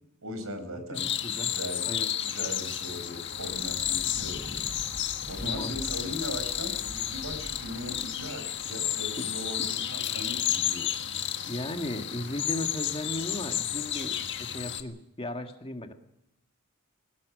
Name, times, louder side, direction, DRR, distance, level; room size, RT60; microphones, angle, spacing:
voice 1, 0.2-1.1 1.4-1.9 2.2-4.6 5.3-10.9, equal, 75° right, 9 dB, 5.1 m, -39 dB
voice 2, 0.7-1.5 1.8-2.1 5.4-5.8 6.1-6.2 9.2-9.3 9.6-9.7 11.5-15.9, left 1 dB, 25° left, 5 dB, 1.7 m, -36 dB
sound 1, 0.9-14.8, left 10 dB, 55° left, 1.6 m, -32 dB
Thunder, 3.2-9.8, equal, 10° left, 7.2 m, -46 dB
21.5 x 19.5 x 6.3 m, 0.84 s
head